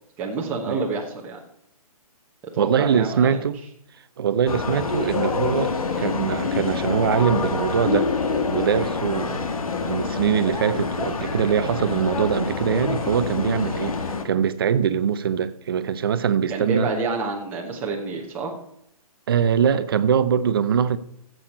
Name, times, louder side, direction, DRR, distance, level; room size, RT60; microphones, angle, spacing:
voice 1, 0.2-1.4 2.5-3.4 16.5-18.5, right 4 dB, 10° right, 1.1 m, -28 dB
voice 2, 2.6-3.6 4.2-8.1 8.5-9.5 9.9-14.0 14.2-16.9 19.3-21.0, right 7 dB, 40° right, 0.6 m, -22 dB
sound 1, 4.5-14.2, left 4 dB, 65° left, 1.5 m, -26 dB
14.5 x 7.9 x 4.3 m
hypercardioid pair, 165°, 19 cm